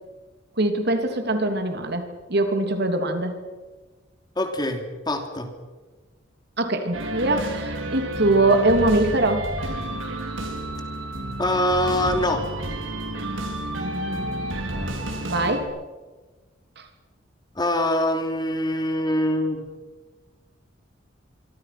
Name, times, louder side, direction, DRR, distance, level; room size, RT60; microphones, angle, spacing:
voice 1, 0.6-3.4 6.6-9.5 13.7-14.9 15.3-15.7 16.8-16.9, right 2 dB, 60° right, 6 dB, 3.1 m, -23 dB
voice 2, 4.4-5.5 11.4-12.4 17.5-19.6, left 1 dB, 20° left, 5 dB, 3.2 m, -24 dB
sound 1, 6.9-15.6, right 1 dB, 90° right, 4.6 m, -30 dB
26.0 x 25.5 x 6.1 m, 1.3 s
head